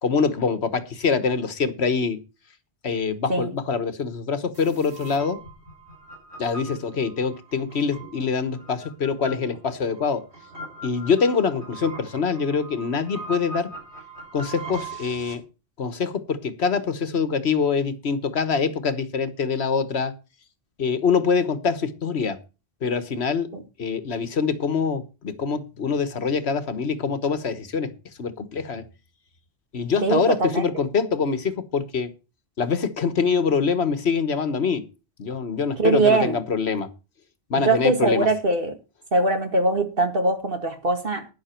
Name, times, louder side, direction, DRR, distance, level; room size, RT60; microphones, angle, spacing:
voice 1, 0.0-2.2 2.8-5.4 6.4-10.2 10.8-13.7 14.3-15.4 15.8-20.1 20.8-22.4 22.8-23.5 23.8-27.9 28.2-28.8 29.7-32.1 32.6-34.8 35.2-36.9 37.5-38.3, left 5 dB, 80° left, 1.5 m, -24 dB
sound 1, 4.5-15.4, right 3 dB, 80° right, 4.5 m, -40 dB
voice 2, 30.0-30.7 35.8-36.4 37.5-38.8 39.1-41.3, right 2 dB, 60° right, 2.2 m, -22 dB
12.0 x 10.5 x 4.4 m
omnidirectional pair, 1.1 m